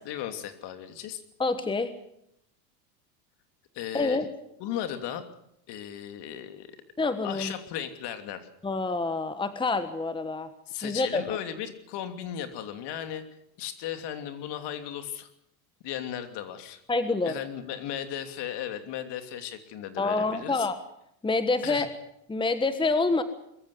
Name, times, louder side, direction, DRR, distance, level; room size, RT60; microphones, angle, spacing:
voice 1, 0.0-1.2 3.7-4.2 4.6-5.2 5.7-6.8 7.2-8.5 10.7-13.2 13.6-15.3 15.8-16.8 17.2-20.7 21.6-21.9, left 10 dB, 55° left, 9 dB, 3.0 m, -36 dB
voice 2, 1.4-1.9 3.9-4.3 7.0-7.5 8.6-10.5 10.8-11.4 16.9-17.3 20.0-20.8 21.2-21.9 22.3-23.2, left 3 dB, 10° left, 11 dB, 1.4 m, -27 dB
22.5 x 14.5 x 9.6 m, 0.77 s
supercardioid pair, 105°, 50 cm